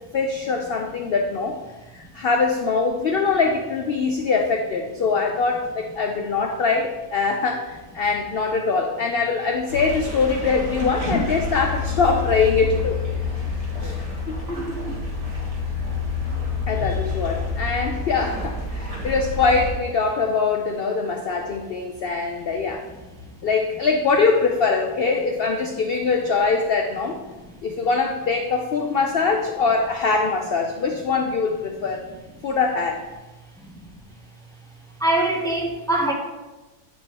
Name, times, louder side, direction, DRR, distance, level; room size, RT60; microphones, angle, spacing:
voice 1, 0.1-1.5 1.9-13.0 13.8-14.0 14.3-14.4 16.7-22.8 23.4-27.2 27.6-32.0 32.4-33.0, left 4 dB, 85° left, 3 dB, 0.5 m, -23 dB
sound 1, 9.7-19.7, left 4 dB, 25° right, 1.4 m, -28 dB
voice 2, 14.5-15.0 35.0-36.1, right 1 dB, 5° left, -1 dB, 0.5 m, -23 dB
10.5 x 3.7 x 2.9 m, 1.1 s
omnidirectional pair, 1.6 m